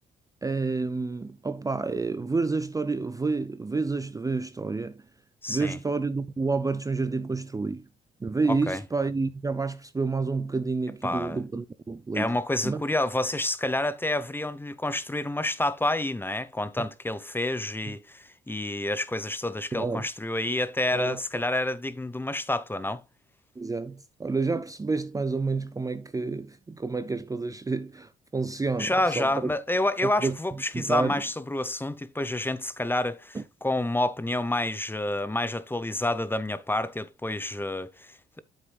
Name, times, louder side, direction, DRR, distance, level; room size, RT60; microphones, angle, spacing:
voice 1, 0.4-5.0 5.5-7.8 8.2-12.3 12.6-12.8 17.8-17.9 19.7-20.1 20.9-21.2 23.6-29.5 30.0-30.4 30.7-31.2 33.3-33.4, right 3 dB, 20° right, 0.6 m, -29 dB
voice 2, 5.4-5.8 8.5-8.8 11.0-11.4 12.1-23.0 28.8-38.4, left 1 dB, 10° left, 0.9 m, -29 dB
9.4 x 7.6 x 2.4 m
cardioid pair, 75°, 18 cm